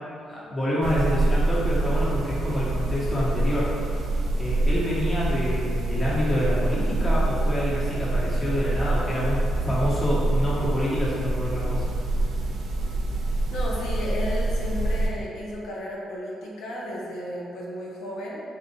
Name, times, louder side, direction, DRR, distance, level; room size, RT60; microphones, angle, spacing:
voice 1, 0.3-4.0 4.4-12.0, equal, 30° left, -8 dB, 1.2 m, -27 dB
sound 1, 0.8-15.1, right 2 dB, 70° right, 0.6 m, -25 dB
voice 2, 13.5-18.4, equal, 80° left, -4 dB, 0.9 m, -33 dB
4.1 x 2.4 x 4.2 m, 2.4 s
cardioid pair, 90°, 0 cm